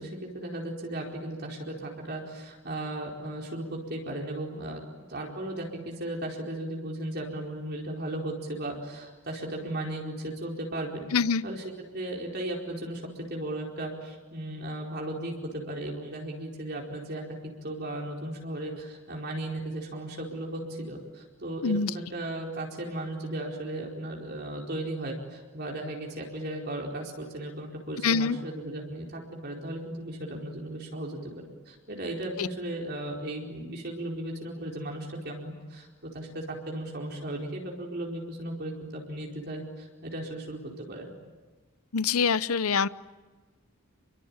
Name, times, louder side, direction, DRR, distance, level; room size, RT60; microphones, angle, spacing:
voice 1, 0.0-4.8 5.1-11.1 11.4-11.6 11.9-17.4 17.6-41.1, right 1 dB, 45° right, -1 dB, 4.6 m, -36 dB
voice 2, 11.1-11.4 21.6-21.9 28.0-28.4 32.4-32.5 41.9-42.9, left 5 dB, 80° left, 17 dB, 0.8 m, -25 dB
29.0 x 23.0 x 8.9 m, 1.3 s
head